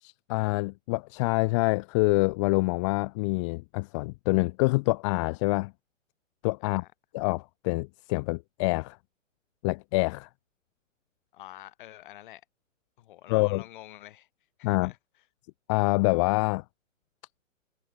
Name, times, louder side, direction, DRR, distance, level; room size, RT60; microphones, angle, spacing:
voice 1, 0.0-5.7 6.4-6.8 7.1-9.0 9.6-10.3 13.3-13.6 14.6-14.9 15.7-16.6, left 25 dB, 25° left, 1.1 m, -26 dB
voice 2, 11.3-12.4 13.0-14.3 14.6-15.0, left 14 dB, 40° left, 4.1 m, -47 dB
hypercardioid pair, 140°, 39 cm